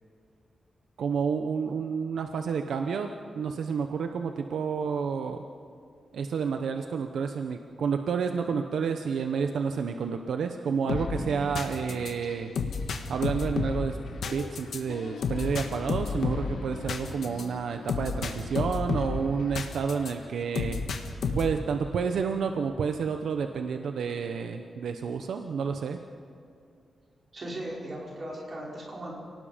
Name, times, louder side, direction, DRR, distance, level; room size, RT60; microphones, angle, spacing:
voice 1, 1.0-3.1 3.3-5.4 6.1-12.5 13.1-20.8 21.3-26.0, right 6 dB, 80° right, 6 dB, 0.9 m, -30 dB
sound 1, 10.9-20.1 20.5-21.7, left 5 dB, 70° left, 1.6 m, -32 dB
voice 2, 27.3-29.1, right 1 dB, 35° right, -4 dB, 5.4 m, -37 dB
29.0 x 18.5 x 5.2 m, 2.5 s
wide cardioid pair, 180°, 0 cm